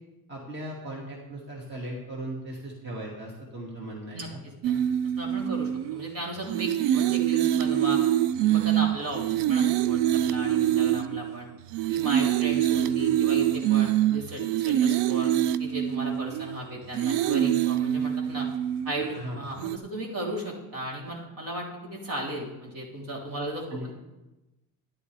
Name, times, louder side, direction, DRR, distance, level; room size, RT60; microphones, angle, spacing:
voice 1, 0.3-4.4 19.0-19.4 23.7-23.9, right 1 dB, 25° right, -3 dB, 2.2 m, -38 dB
voice 2, 4.1-4.7 5.2-8.0 8.4-11.5 11.9-15.3 15.6-18.5 18.9-23.9, right 1 dB, 50° right, -2 dB, 3.5 m, -36 dB
sound 1, 4.6-6.1 6.5-11.4 11.7-16.6 16.9-19.2 19.6-19.8, right 11 dB, 75° right, 0.6 m, -25 dB
13.5 x 11.0 x 3.4 m, 1.0 s
cardioid pair, 135°, 42 cm